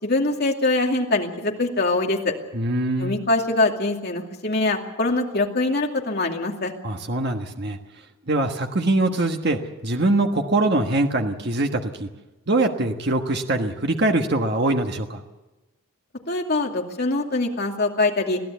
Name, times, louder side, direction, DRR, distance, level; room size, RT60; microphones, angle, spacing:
voice 1, 0.0-2.3 3.0-6.7 16.3-18.4, left 2 dB, 50° left, 1 dB, 2.5 m, -23 dB
voice 2, 2.5-3.2 6.8-7.8 8.3-12.1 12.5-15.2, right 2 dB, 50° right, 4 dB, 1.4 m, -23 dB
23.0 x 15.5 x 8.2 m, 1.1 s
head